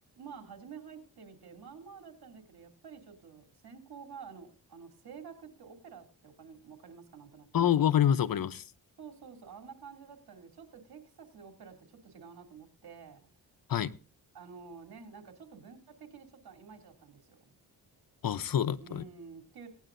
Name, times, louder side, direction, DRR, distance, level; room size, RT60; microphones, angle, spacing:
voice 1, 0.1-7.6 9.0-13.3 14.3-17.4 18.8-19.7, right 6 dB, 70° right, 4 dB, 2.9 m, -50 dB
voice 2, 7.5-8.6 13.7-13.9 18.2-19.0, left 9 dB, 60° left, 14 dB, 0.8 m, -26 dB
18.0 x 10.0 x 2.6 m, 0.36 s
cardioid pair, 65°, 38 cm